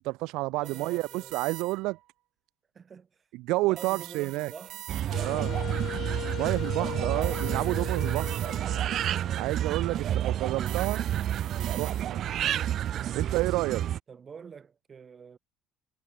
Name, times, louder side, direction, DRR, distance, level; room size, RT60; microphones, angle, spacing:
voice 1, 0.0-2.0 3.4-4.5 5.2-5.6 6.4-8.3 9.4-11.0 11.8-12.2 13.1-13.8, right 21 dB, 80° right, 0.7 m, -30 dB
voice 2, 0.5-1.4 2.7-3.3 3.6-4.8 9.8-11.0 14.1-15.4, right 6 dB, 25° right, 5.2 m, -48 dB
sound 1, 0.6-2.0 3.8-5.4 7.2-8.9 10.7-12.3, right 16 dB, 65° right, 2.3 m, -44 dB
sound 2, 4.9-14.0, right 11 dB, 45° right, 0.8 m, -30 dB
Wind instrument woodwind instrument, 5.1-10.0, left 14 dB, 55° left, 0.9 m, -40 dB
cardioid pair, 160°, 0 cm